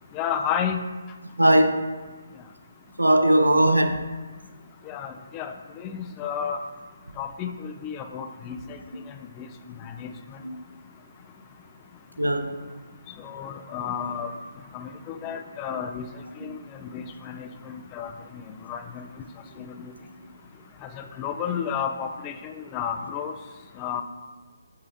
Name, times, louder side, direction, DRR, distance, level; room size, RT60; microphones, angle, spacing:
voice 1, 0.1-0.8 4.9-6.6 7.2-8.8 9.4-9.5 10.0-10.1 13.2-14.3 14.7-16.1 16.4-18.4 18.7-19.1 19.6-19.9 20.8-23.3 23.8-24.0, left 8 dB, 20° left, 6 dB, 0.3 m, -32 dB
voice 2, 1.4-1.9 3.0-4.0 10.4-10.5 12.2-12.5, right 1 dB, 85° right, 6 dB, 0.6 m, -19 dB
7.2 x 2.7 x 4.8 m, 1.3 s
figure-of-eight pair, 140°, 0 cm